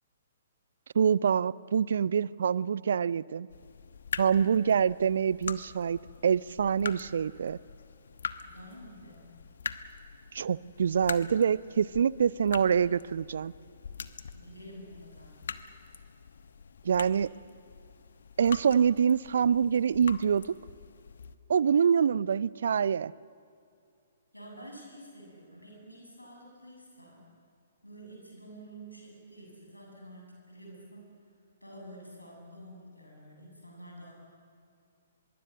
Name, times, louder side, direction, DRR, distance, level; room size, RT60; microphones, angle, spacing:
voice 1, 0.9-3.5 4.2-7.6 10.3-13.5 16.8-17.3 18.4-20.4 21.5-23.1, right 7 dB, 60° right, 22 dB, 0.5 m, -25 dB
sound 1, 3.5-21.4, left 6 dB, 60° left, 1.1 m, -44 dB
voice 2, 8.4-9.3 14.3-15.4 24.3-27.3 27.8-31.1 31.6-34.1, right 1 dB, 90° left, 0 dB, 7.8 m, -49 dB
24.5 x 22.5 x 7.7 m, 2.5 s
figure-of-eight pair, 120°, 0 cm